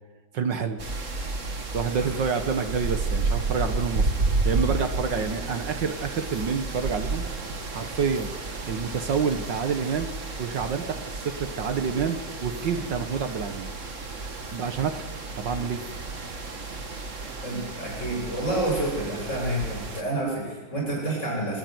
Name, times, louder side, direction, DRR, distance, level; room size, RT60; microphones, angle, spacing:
voice 1, 0.3-0.8 1.7-4.1 4.5-7.2 7.7-8.3 8.7-10.1 10.4-13.7 14.5-15.1 15.4-15.8, right 6 dB, 65° right, 9 dB, 2.0 m, -28 dB
sound 1, 0.8-20.0, right 3 dB, 40° right, 2.1 m, -32 dB
voice 2, 17.4-21.6, right 1 dB, 35° left, -2 dB, 8.4 m, -29 dB
28.0 x 13.5 x 9.5 m, 1.3 s
omnidirectional pair, 2.1 m